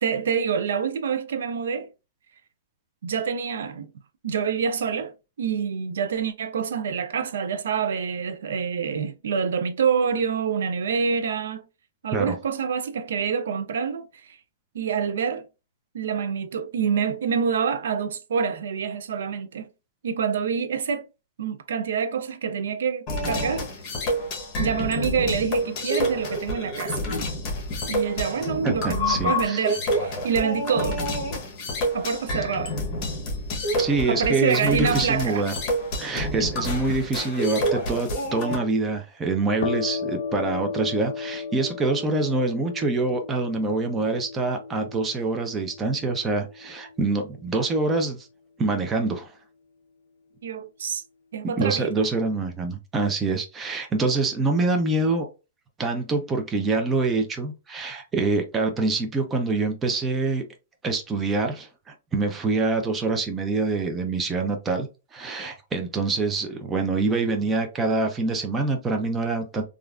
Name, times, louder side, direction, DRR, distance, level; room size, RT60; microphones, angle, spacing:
voice 1, 0.0-1.9 3.0-3.9 4.2-5.1 5.4-11.6 12.0-14.4 14.7-15.4 15.9-19.7 20.0-21.1 21.4-23.7 24.6-27.1 27.9-31.0 31.9-32.7 34.1-35.5 50.4-51.0 51.3-52.1, right 6 dB, 75° right, 0.4 m, -26 dB
sound 1, 23.1-38.6, equal, 30° left, 1.0 m, -28 dB
voice 2, 28.6-29.6 33.8-35.5 36.0-48.3 48.6-49.3 51.6-55.3 55.8-60.4 60.8-64.9 65.1-69.6, right 3 dB, 15° right, 0.5 m, -25 dB
sound 2, 39.6-47.1, left 5 dB, 75° left, 0.4 m, -35 dB
3.1 x 2.4 x 2.4 m
hypercardioid pair, 155°, 0 cm